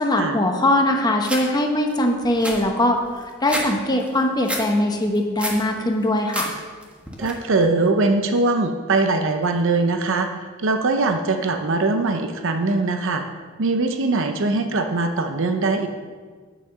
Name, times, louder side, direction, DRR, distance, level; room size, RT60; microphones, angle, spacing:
voice 1, 0.0-6.5, left 1 dB, 20° left, 3 dB, 1.0 m, -21 dB
sound 1, 1.2-1.4 1.9-2.0 2.2-3.7 4.0-4.6 5.0-5.6 6.0-6.5 6.8-7.3, equal, 5° right, 1.3 m, -29 dB
voice 2, 7.2-10.3 10.6-13.2 13.6-15.9, right 3 dB, 60° right, 6 dB, 0.6 m, -21 dB
9.4 x 5.8 x 6.6 m, 1.5 s
head